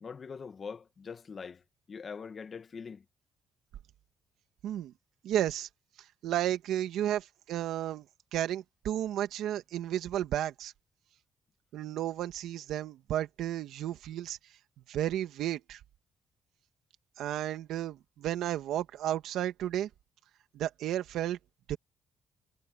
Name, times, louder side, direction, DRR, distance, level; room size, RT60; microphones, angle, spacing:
voice 1, 0.0-1.6 1.9-3.0, left 5 dB, 40° left, 1.8 m, -43 dB
voice 2, 4.6-4.9 5.2-5.7 6.2-8.0 8.3-10.7 11.7-14.4 14.9-15.8 17.2-19.9 20.5-21.4 21.7-21.8, right 12 dB, 85° right, 1.9 m, -33 dB
cardioid pair, 90°, 0 cm